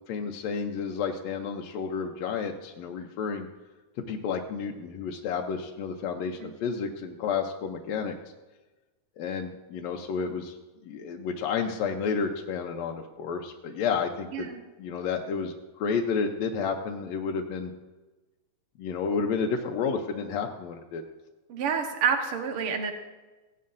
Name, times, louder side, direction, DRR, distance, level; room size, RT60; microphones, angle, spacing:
voice 1, 0.1-3.5 4.1-8.2 9.2-10.6 10.8-14.5 14.8-17.7 18.8-21.0, left 6 dB, 70° left, 2 dB, 1.9 m, -31 dB
voice 2, 21.5-22.9, right 6 dB, 55° right, 4 dB, 1.9 m, -28 dB
16.0 x 11.0 x 2.6 m, 1.2 s
omnidirectional pair, 3.4 m